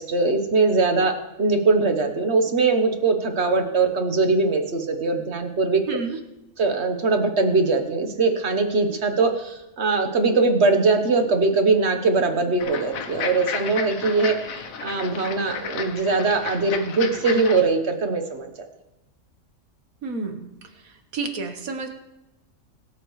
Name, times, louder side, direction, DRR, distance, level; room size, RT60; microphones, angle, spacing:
voice 1, 0.0-6.0 6.6-18.7, right 3 dB, 50° right, 6 dB, 1.4 m, -21 dB
voice 2, 5.9-6.2 20.0-20.5 21.1-21.9, right 4 dB, 80° right, 5 dB, 1.7 m, -29 dB
sound 1, 12.6-17.6, left 6 dB, 75° left, 1.4 m, -33 dB
24.0 x 8.4 x 3.2 m, 0.97 s
omnidirectional pair, 1.4 m